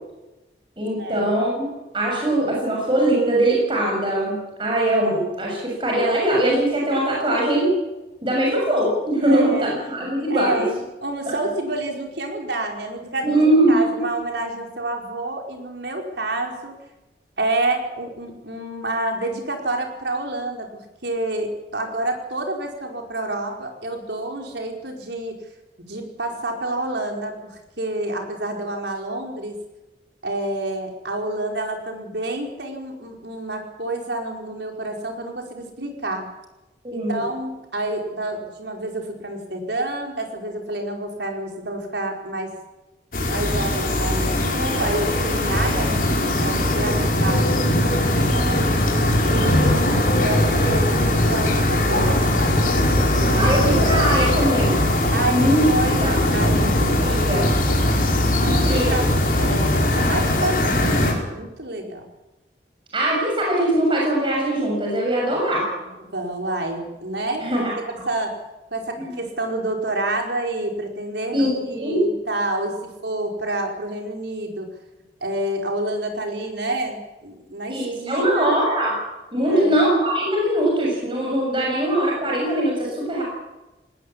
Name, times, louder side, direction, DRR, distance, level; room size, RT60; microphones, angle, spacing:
voice 1, 0.8-1.6 1.9-7.7 8.2-10.6 11.3-11.4 13.2-13.8 36.8-37.2 53.4-54.8 55.3-55.7 56.0-56.2 57.0-57.5 58.4-58.9 62.9-65.7 67.4-67.7 69.0-69.2 71.3-72.0 77.7-79.0 79.3-83.2, right 1 dB, 30° right, -2 dB, 7.1 m, -21 dB
voice 2, 9.3-9.7 10.0-16.7 17.4-25.4 25.9-29.6 30.2-36.3 36.9-42.5 43.3-48.6 49.2-49.7 50.0-53.5 55.1-57.2 58.4-59.0 59.4-62.1 66.0-68.4 68.7-72.8 73.0-74.7 75.2-78.6 79.3-79.8, right 2 dB, 80° right, 2 dB, 4.8 m, -28 dB
sound 1, 43.1-61.1, left 1 dB, 50° left, 5.5 m, -20 dB
19.5 x 19.0 x 8.6 m, 1.0 s
head